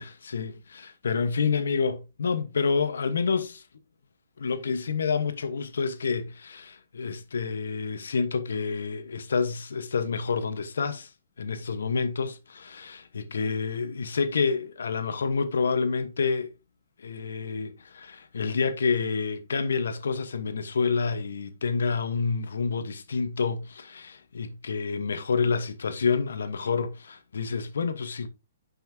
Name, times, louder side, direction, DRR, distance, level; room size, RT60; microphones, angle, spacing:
voice 1, 0.0-3.6 4.4-11.1 11.4-16.5 17.0-28.3, left 5 dB, 85° left, 1.2 m, -28 dB
9.5 x 5.6 x 2.8 m
hypercardioid pair, 160°, 0 cm